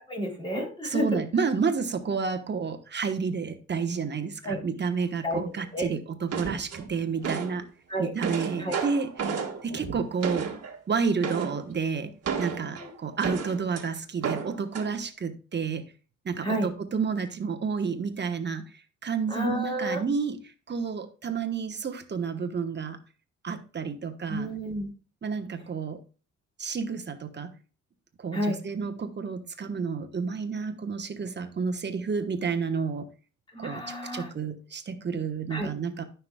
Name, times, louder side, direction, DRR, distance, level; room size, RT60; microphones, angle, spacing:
voice 1, 0.1-1.1 4.4-4.6 5.2-5.9 7.9-8.1 8.6-8.8 12.3-12.9 16.4-16.7 19.3-20.0 24.3-24.9 28.3-28.6 33.5-34.3 35.5-35.7, equal, 15° left, -1 dB, 3.3 m, -31 dB
voice 2, 0.8-7.6 8.0-9.3 9.6-10.5 10.9-12.1 12.4-15.8 16.2-18.6 19.0-20.4 20.7-23.0 23.4-24.5 25.2-26.0 26.6-27.5 28.2-33.1 33.6-36.0, right 5 dB, 35° right, 7 dB, 1.2 m, -30 dB
sound 1, 6.3-7.6 8.0-10.8 11.2-11.6 12.2-13.8 14.2-14.9, right 6 dB, 55° right, 1.6 m, -32 dB
13.5 x 5.9 x 2.3 m, 0.36 s
cardioid pair, 90°, 30 cm